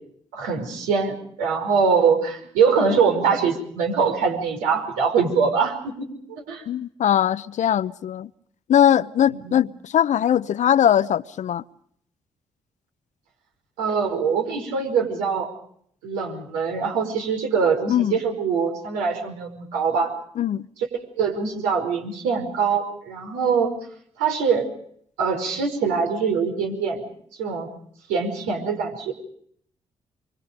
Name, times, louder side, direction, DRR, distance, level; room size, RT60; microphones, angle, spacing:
voice 1, 0.3-6.6 9.3-9.6 13.8-15.5 16.0-20.1 21.2-23.7 24.2-24.7 25.2-27.1 27.4-27.7 28.1-29.1, right 5 dB, 85° right, 5.3 m, -23 dB
voice 2, 6.7-8.3 8.7-11.6 17.9-18.2 20.4-20.7, left 10 dB, 60° left, 0.8 m, -20 dB
27.0 x 24.5 x 5.2 m
hypercardioid pair, 45°, 14 cm